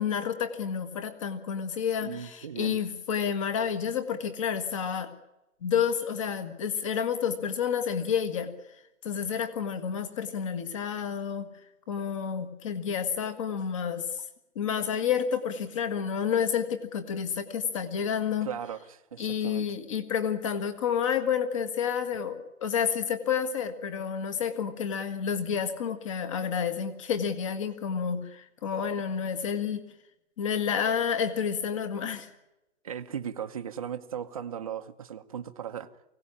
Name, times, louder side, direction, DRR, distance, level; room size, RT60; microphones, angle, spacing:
voice 1, 0.0-5.1 5.6-8.5 9.0-11.5 11.9-14.1 14.5-18.5 19.2-29.8 30.4-32.3, left 7 dB, 25° left, 1.6 m, -30 dB
voice 2, 2.0-2.8 18.4-19.7 32.8-35.9, right 8 dB, 25° right, 0.8 m, -37 dB
24.0 x 17.5 x 9.9 m
hypercardioid pair, 175°, 42 cm